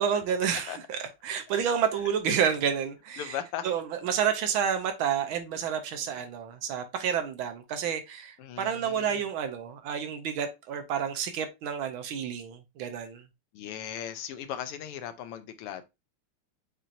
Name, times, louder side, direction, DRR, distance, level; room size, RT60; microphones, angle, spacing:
voice 1, 0.0-13.2, right 8 dB, 75° right, 1.4 m, -30 dB
voice 2, 3.2-3.7 8.4-9.2 13.5-15.8, left 10 dB, 85° left, 1.6 m, -37 dB
7.4 x 2.7 x 2.5 m
omnidirectional pair, 2.4 m